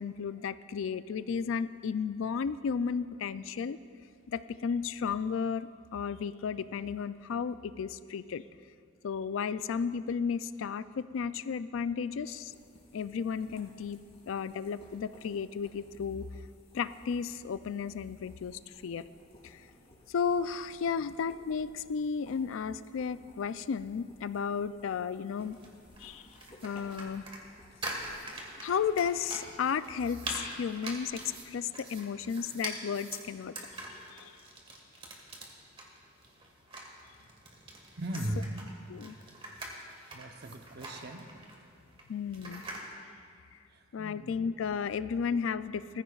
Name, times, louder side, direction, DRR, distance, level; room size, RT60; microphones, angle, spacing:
voice 1, 0.0-3.8 4.3-8.4 9.0-12.5 12.9-14.0 14.3-16.3 16.7-19.1 19.4-19.6 20.1-25.6 26.0-26.3 26.6-27.2 28.6-33.5 34.1-34.3 38.9-39.1 42.1-42.6 43.9-46.0, left 6 dB, 80° left, 14 dB, 0.4 m, -33 dB
sound 1, 12.4-31.4, left 1 dB, 30° left, 2.7 m, -59 dB
sound 2, 25.4-42.9, right 2 dB, 30° right, 1.6 m, -44 dB
voice 2, 38.0-38.5 40.1-41.3 43.7-44.4, right 1 dB, 55° right, 6 dB, 0.8 m, -38 dB
20.0 x 14.5 x 2.4 m, 2.3 s
head